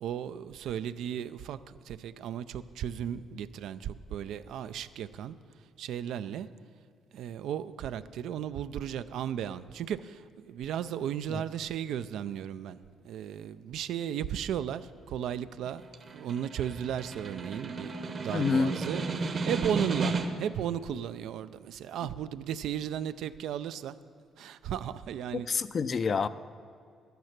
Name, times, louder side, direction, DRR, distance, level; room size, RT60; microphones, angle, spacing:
voice 1, 0.0-5.4 5.8-6.5 7.1-12.8 13.0-15.8 16.1-24.0 24.4-25.5, right 9 dB, 80° right, 13 dB, 0.4 m, -35 dB
Snare drum, 15.7-20.6, right 3 dB, 45° right, 0.9 m, -34 dB
voice 2, 18.3-18.8 25.3-26.3, left 5 dB, 45° left, 14 dB, 0.4 m, -28 dB
11.5 x 9.3 x 5.9 m, 2.3 s
cardioid pair, 90°, 0 cm